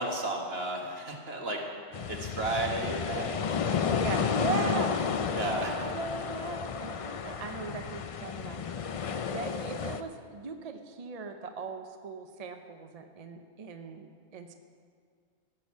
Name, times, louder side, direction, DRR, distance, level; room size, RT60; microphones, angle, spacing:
voice 1, 0.0-1.6 2.1-3.6 5.3-5.8, right 2 dB, 60° right, 0 dB, 1.7 m, -33 dB
sound 1, 1.9-10.0, left 6 dB, 60° left, 0.3 m, -32 dB
voice 2, 3.9-5.0 5.3-8.6 8.9-9.0 9.3-14.5, right 4 dB, 45° right, 6 dB, 0.6 m, -39 dB
15.0 x 6.3 x 7.2 m, 2.1 s
omnidirectional pair, 1.2 m